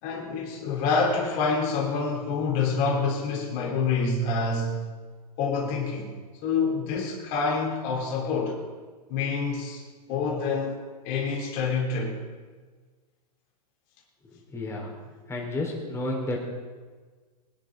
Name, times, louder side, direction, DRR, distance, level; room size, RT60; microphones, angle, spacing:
voice 1, 0.0-4.8 5.4-6.2 6.4-8.6 9.1-9.8 10.1-10.8 11.0-12.2, left 4 dB, 45° left, -1 dB, 3.8 m, -27 dB
voice 2, 14.3-15.0 15.3-16.4, left 2 dB, 15° left, -1 dB, 3.9 m, -31 dB
23.5 x 10.5 x 3.8 m, 1.4 s
hypercardioid pair, 125°, 21 cm